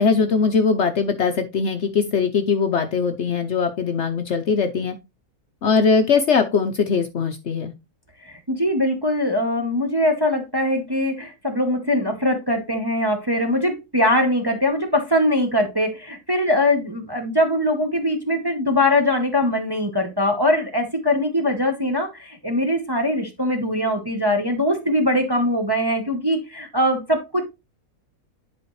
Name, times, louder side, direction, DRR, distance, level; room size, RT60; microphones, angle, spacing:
voice 1, 0.0-5.0 5.6-7.7, left 5 dB, 60° left, 7 dB, 0.8 m, -20 dB
voice 2, 8.2-27.4, left 1 dB, 20° right, 3 dB, 0.8 m, -22 dB
10.5 x 4.3 x 3.1 m, 0.24 s
omnidirectional pair, 1.6 m